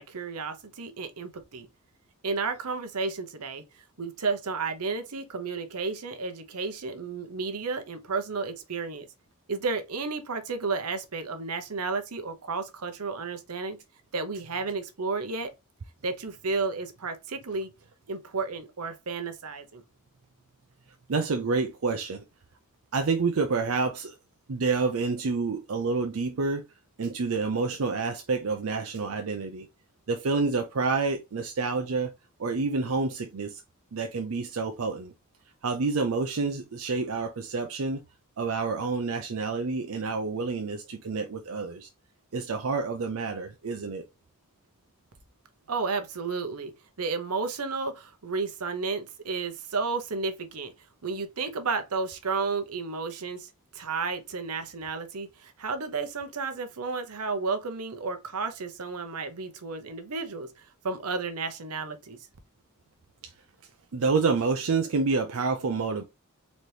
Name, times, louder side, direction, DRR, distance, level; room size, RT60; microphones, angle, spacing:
voice 1, 0.0-1.7 2.2-3.6 4.0-9.1 9.5-13.8 14.1-15.5 16.0-17.7 18.1-19.8 45.7-46.7 47.0-50.7 51.0-62.2, right 4 dB, 85° right, 0.9 m, -32 dB
voice 2, 21.1-22.2 22.9-24.2 24.5-26.6 27.0-29.7 30.1-32.1 32.4-33.6 33.9-35.1 35.6-38.0 38.4-41.9 42.3-44.0 63.2-63.3 63.9-66.0, right 4 dB, 65° right, 0.5 m, -28 dB
4.1 x 3.0 x 3.2 m
head